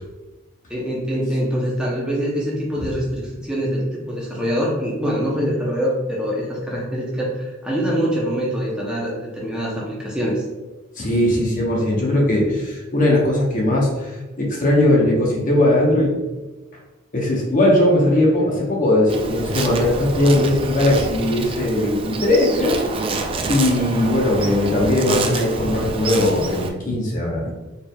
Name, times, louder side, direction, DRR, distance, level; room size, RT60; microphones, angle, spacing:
voice 1, 0.7-10.4 24.3-24.5, equal, 5° right, -5 dB, 0.7 m, -24 dB
voice 2, 11.0-16.1 17.1-22.8 23.5-27.5, left 1 dB, 40° left, -2 dB, 0.9 m, -19 dB
Insect, 19.1-26.7, right 3 dB, 25° right, 0.3 m, -27 dB
4.4 x 3.4 x 2.3 m, 1.2 s
head